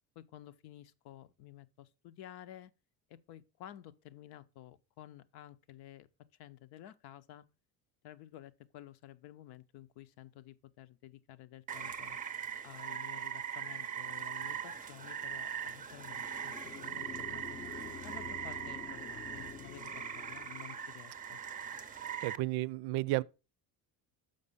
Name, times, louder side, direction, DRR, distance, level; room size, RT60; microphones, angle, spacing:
voice 1, 0.1-2.7 3.1-7.5 8.0-12.2 12.6-17.6 18.0-21.4, left 13 dB, 75° left, 0.8 m, -52 dB
Rain, 11.7-22.4, right 8 dB, 20° right, 0.5 m, -41 dB
sound 1, 15.9-20.8, left 6 dB, 25° left, 0.5 m, -48 dB
voice 2, 22.2-23.2, right 18 dB, 80° right, 0.5 m, -32 dB
6.6 x 5.4 x 5.4 m
cardioid pair, 130°, 39 cm